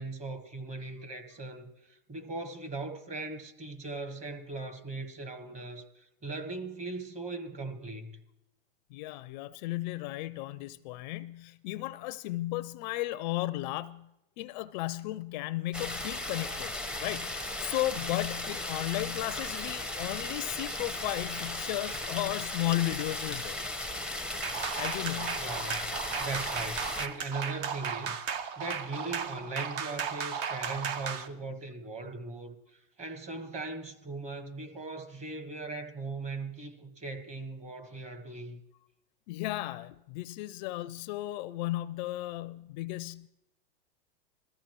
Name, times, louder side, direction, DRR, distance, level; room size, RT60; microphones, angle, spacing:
voice 1, 0.0-8.2 25.4-38.6, right 3 dB, 20° right, 1.4 m, -39 dB
voice 2, 8.9-14.1 14.4-16.7 17.0-23.6 24.8-25.4 39.3-43.3, left 16 dB, 50° left, 0.4 m, -34 dB
sound 1, 15.7-27.1, left 2 dB, 5° right, 0.6 m, -36 dB
sound 2, 24.4-31.3, right 7 dB, 60° right, 1.0 m, -35 dB
21.0 x 14.0 x 3.1 m
supercardioid pair, 135°, 31 cm